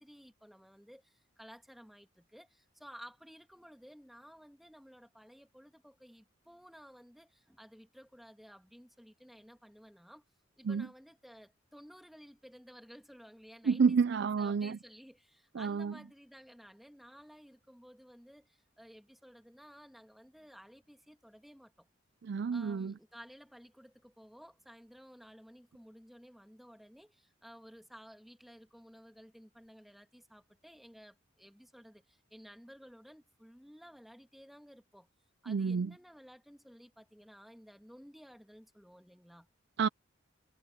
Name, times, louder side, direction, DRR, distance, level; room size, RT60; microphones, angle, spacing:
voice 1, 0.0-10.2 10.6-14.0 14.4-21.9 22.5-35.1 35.4-39.5, equal, ahead, 1.7 m, -55 dB
voice 2, 13.6-14.8 15.5-15.9 22.2-22.9 35.5-35.9 39.8-39.9, right 5 dB, 60° right, 0.4 m, -29 dB
head